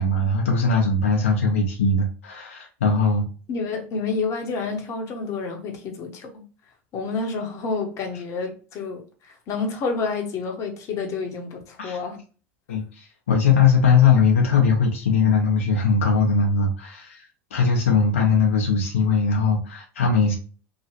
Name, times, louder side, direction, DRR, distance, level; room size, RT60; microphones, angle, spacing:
voice 1, 0.0-3.3 11.8-12.0 12.7-17.2 17.5-20.3, left 4 dB, 85° left, 0.7 m, -20 dB
voice 2, 3.5-6.4 6.9-12.2, left 4 dB, 45° left, 0.9 m, -29 dB
2.9 x 2.4 x 2.8 m
hypercardioid pair, 80°, 7 cm